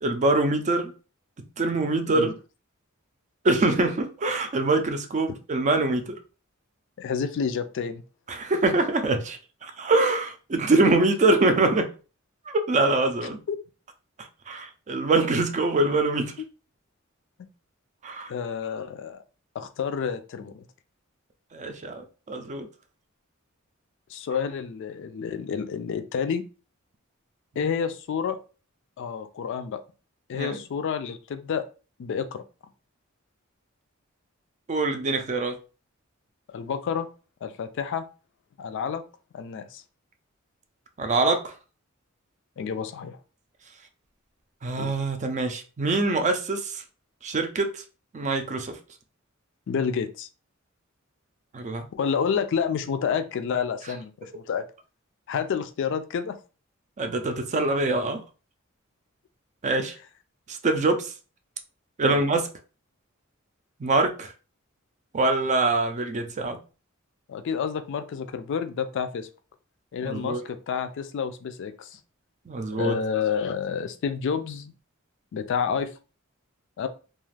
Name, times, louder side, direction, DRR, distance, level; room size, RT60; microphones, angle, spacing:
voice 1, 0.0-0.9 1.6-2.3 3.4-6.2 8.3-11.9 12.5-13.4 14.5-16.3 18.0-18.3 21.5-22.7 27.6-27.7 30.3-30.6 34.7-35.6 41.0-41.5 44.6-46.8 47.2-47.8 48.1-48.8 51.5-51.9 57.0-58.2 59.6-59.9 60.5-61.1 62.0-62.5 63.8-64.3 65.1-66.6 70.0-70.4 72.5-72.9, right 2 dB, 35° right, 0.4 m, -24 dB
voice 2, 7.0-8.0 13.5-13.6 18.3-19.2 19.5-20.6 24.1-26.4 27.6-28.4 29.0-29.8 30.3-31.6 32.0-32.4 36.5-37.1 37.4-38.0 38.6-39.0 39.3-39.8 42.6-43.2 44.8-44.9 49.7-50.3 51.9-54.6 55.3-56.4 62.1-62.3 67.3-69.3 69.9-72.0 72.8-74.7 75.3-75.9 76.8-76.9, left 6 dB, 60° left, 0.3 m, -29 dB
2.4 x 2.3 x 3.2 m
head